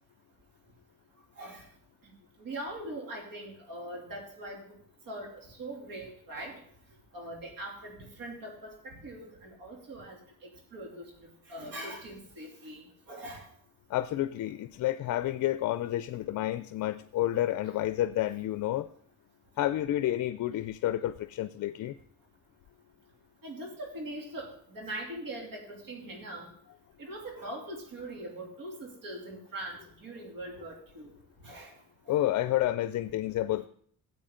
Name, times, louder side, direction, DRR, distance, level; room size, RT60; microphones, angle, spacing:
voice 1, 2.4-4.8 5.1-6.6 7.1-10.2 10.7-11.0 11.5-13.5 23.4-26.5 27.0-31.1 31.4-31.7 32.1-32.2, right 1 dB, 70° right, 0 dB, 3.0 m, -41 dB
voice 2, 13.9-18.9 19.6-22.0 32.1-33.7, left 13 dB, 55° left, 13 dB, 0.4 m, -30 dB
13.0 x 8.2 x 3.8 m, 0.63 s
cardioid pair, 120°, 34 cm